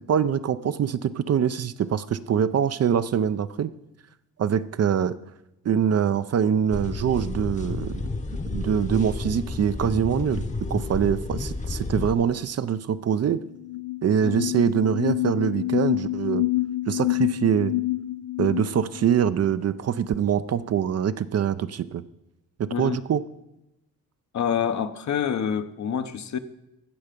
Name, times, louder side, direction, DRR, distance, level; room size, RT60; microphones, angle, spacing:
voice 1, 0.0-3.7 4.4-5.2 5.6-8.0 8.4-13.4 14.0-16.4 16.9-17.7 18.4-22.0 22.6-23.2, right 8 dB, 45° right, 0.5 m, -24 dB
sound 1, 6.7-12.1, left 3 dB, 20° left, 0.9 m, -31 dB
sound 2, 13.2-13.3 13.6-19.3, left 17 dB, 80° left, 0.5 m, -28 dB
voice 2, 24.3-26.4, left 8 dB, 55° left, 0.8 m, -27 dB
15.5 x 5.6 x 5.2 m
cardioid pair, 70°, 34 cm